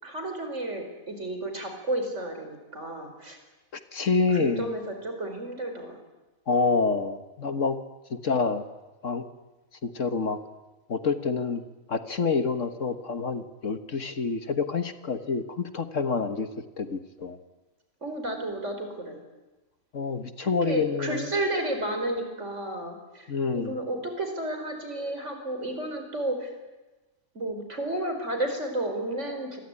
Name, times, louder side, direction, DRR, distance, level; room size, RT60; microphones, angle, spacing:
voice 1, 0.0-3.4 4.3-6.0 18.0-19.2 20.4-23.3 23.5-26.5 27.4-29.6, right 1 dB, 50° right, 5 dB, 5.2 m, -32 dB
voice 2, 3.9-4.8 6.5-7.8 8.1-8.6 9.0-9.2 9.8-10.4 10.9-11.6 11.9-16.5 16.8-17.4 19.9-21.3 23.3-23.7, left 4 dB, 55° left, 10 dB, 1.7 m, -27 dB
27.0 x 22.0 x 9.8 m, 1.1 s
omnidirectional pair, 1.6 m